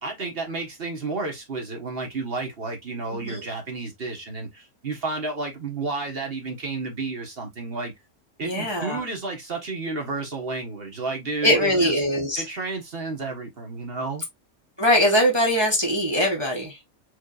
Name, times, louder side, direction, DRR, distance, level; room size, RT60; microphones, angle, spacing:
voice 1, 0.0-7.9 8.4-11.9 12.4-14.2, right 3 dB, 45° right, 1.5 m, -31 dB
voice 2, 3.1-3.4 8.4-9.0 11.4-12.4 14.8-16.8, equal, 20° right, 1.1 m, -22 dB
4.6 x 3.5 x 2.5 m
omnidirectional pair, 1.5 m